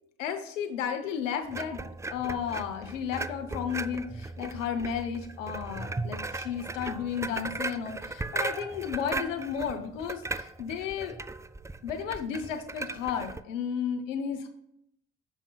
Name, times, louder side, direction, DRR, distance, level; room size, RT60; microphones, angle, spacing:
voice 1, 0.2-1.8 2.1-11.2 11.8-14.5, left 7 dB, 85° left, 6 dB, 0.9 m, -33 dB
sound 1, 1.5-13.4, right 3 dB, 10° right, 0.4 m, -37 dB
15.5 x 5.4 x 2.3 m, 0.75 s
hypercardioid pair, 45°, 37 cm